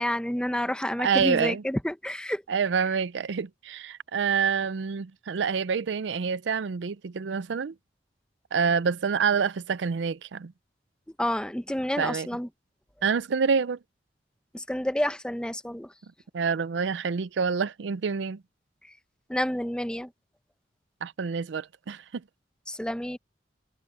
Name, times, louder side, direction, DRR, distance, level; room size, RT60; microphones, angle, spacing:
voice 1, 0.0-2.4 11.2-12.5 14.5-15.9 19.3-20.1 22.7-23.2, left 1 dB, 5° left, 0.7 m, -29 dB
voice 2, 1.0-1.6 2.5-7.7 8.5-10.5 12.0-12.3 13.0-13.8 16.3-18.4 21.0-22.2, right 6 dB, 80° right, 0.5 m, -27 dB
head